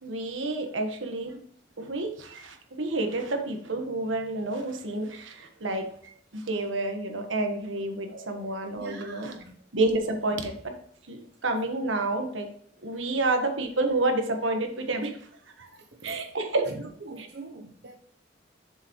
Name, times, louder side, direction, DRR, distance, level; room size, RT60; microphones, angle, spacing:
voice 1, 0.0-1.4 1.8-5.9 6.3-9.3 9.7-10.7 11.1-12.5 12.8-15.2 15.6-15.7 16.0-16.7 17.2-17.3, right 2 dB, 90° right, 1.4 m, -29 dB
voice 2, 8.7-9.5 12.9-13.0 15.9-16.2 16.7-17.9, right 3 dB, 55° right, 0.9 m, -43 dB
7.1 x 6.7 x 3.1 m
head